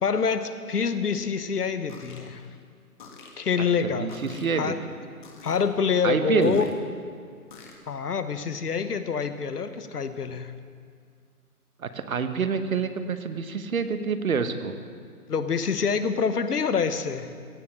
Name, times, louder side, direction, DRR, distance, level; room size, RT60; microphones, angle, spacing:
voice 1, 0.0-2.4 3.4-4.1 4.6-4.8 5.4-6.7 7.9-10.5 15.3-17.3, left 6 dB, 80° left, 11 dB, 1.1 m, -26 dB
sound 1, 1.9-2.2 3.0-3.3 4.1-4.5 5.2-5.6 6.4-6.7 7.5-7.7, left 5 dB, 30° left, 1.5 m, -47 dB
voice 2, 3.8-4.7 6.0-6.7 11.8-14.7, right 6 dB, 65° right, 9 dB, 1.2 m, -27 dB
16.5 x 7.3 x 7.6 m, 2.2 s
hypercardioid pair, 155°, 46 cm